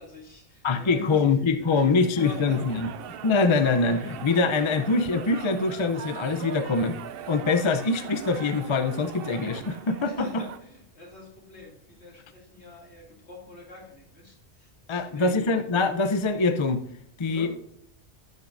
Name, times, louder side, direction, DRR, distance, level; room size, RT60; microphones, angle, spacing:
voice 1, 0.0-1.9 2.2-2.7 10.0-15.5 17.2-17.5, left 2 dB, 65° left, 3.1 m, -44 dB
voice 2, 0.6-2.9 3.2-7.0 7.3-10.3 14.9-16.8 17.2-17.5, left 4 dB, 35° left, 0.5 m, -24 dB
sound 1, 2.2-10.6, right 9 dB, 60° right, 0.7 m, -40 dB
11.5 x 10.5 x 2.6 m
omnidirectional pair, 1.2 m